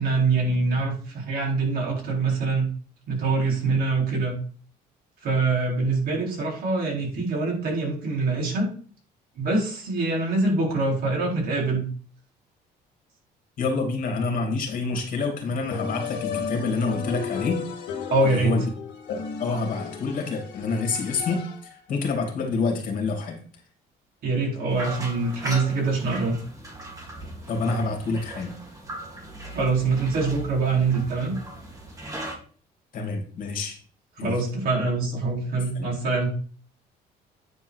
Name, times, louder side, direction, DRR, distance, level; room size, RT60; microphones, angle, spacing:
voice 1, 0.0-2.7 3.1-4.4 5.2-8.7 9.4-11.9 18.1-18.6 24.2-26.4 29.5-31.3 34.2-36.3, right 3 dB, 65° right, -2 dB, 4.3 m, -24 dB
voice 2, 13.6-17.8 18.2-18.6 19.1-23.4 27.5-28.5 32.9-33.8 34.2-34.4 35.7-35.9, left 3 dB, 55° left, 2 dB, 2.7 m, -27 dB
sound 1, 15.7-21.8, left 6 dB, 90° left, 2.0 m, -34 dB
sound 2, 24.7-32.3, right 1 dB, 20° right, 2.6 m, -38 dB
9.5 x 4.7 x 4.7 m, 0.42 s
cardioid pair, 110°, 17 cm